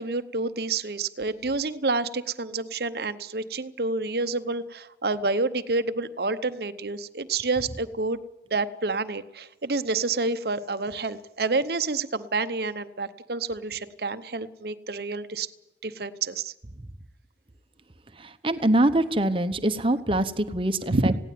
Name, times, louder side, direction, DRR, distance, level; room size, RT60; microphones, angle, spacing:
voice 1, 0.0-8.2 8.5-15.5 15.8-16.5 20.9-21.2, right 3 dB, 60° right, 11 dB, 0.8 m, -28 dB
voice 2, 18.2-21.1, right 1 dB, 30° right, 10 dB, 1.0 m, -24 dB
19.0 x 16.5 x 9.3 m, 0.97 s
head